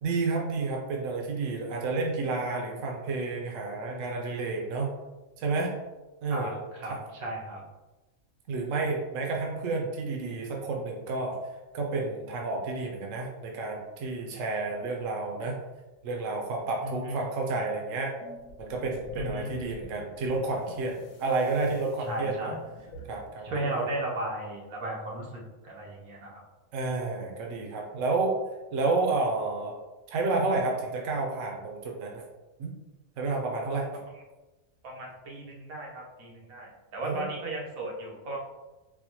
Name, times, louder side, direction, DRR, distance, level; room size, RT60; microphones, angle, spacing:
voice 1, 0.0-4.9 5.4-5.7 6.2-6.6 6.9-7.0 8.5-11.4 11.7-15.6 16.0-18.1 18.6-22.5 23.1-23.8 26.7-28.3 28.7-29.8 30.1-32.2 32.6-32.7 33.2-33.9 37.0-37.3, right 3 dB, 70° right, 0 dB, 1.0 m, -30 dB
voice 2, 6.3-7.7 16.8-17.2 19.1-19.5 22.1-22.6 23.4-26.4 34.8-38.4, right 2 dB, 85° right, -2 dB, 1.2 m, -35 dB
sound 1, 18.2-23.4, left 4 dB, 85° left, 1.1 m, -44 dB
4.3 x 2.1 x 2.8 m, 1.1 s
omnidirectional pair, 1.4 m